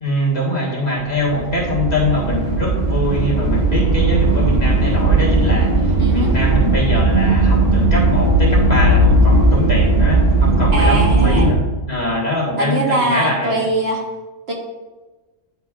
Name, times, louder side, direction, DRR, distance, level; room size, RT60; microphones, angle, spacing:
voice 1, 0.0-13.7, left 1 dB, 35° left, -5 dB, 1.7 m, -23 dB
sound 1, 1.1-11.5, right 2 dB, 40° right, 1.0 m, -16 dB
voice 2, 6.0-6.3 10.7-11.5 12.6-14.0 14.5-14.6, right 1 dB, 65° right, 0 dB, 1.3 m, -21 dB
9.9 x 5.1 x 2.4 m, 1.2 s
omnidirectional pair, 1.2 m